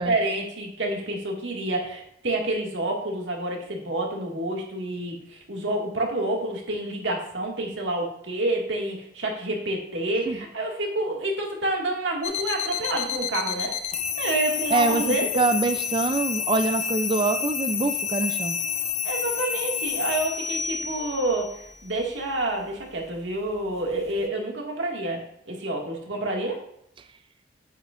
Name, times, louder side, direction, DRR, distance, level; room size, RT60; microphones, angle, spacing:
voice 1, 0.1-13.7 14.2-15.4 19.0-26.6, right 2 dB, 75° right, 0 dB, 1.9 m, -28 dB
sound 1, 12.2-24.3, left 7 dB, 35° left, 0.6 m, -30 dB
voice 2, 14.7-18.6, right 3 dB, 25° right, 9 dB, 0.3 m, -24 dB
8.9 x 8.1 x 2.4 m, 0.73 s
head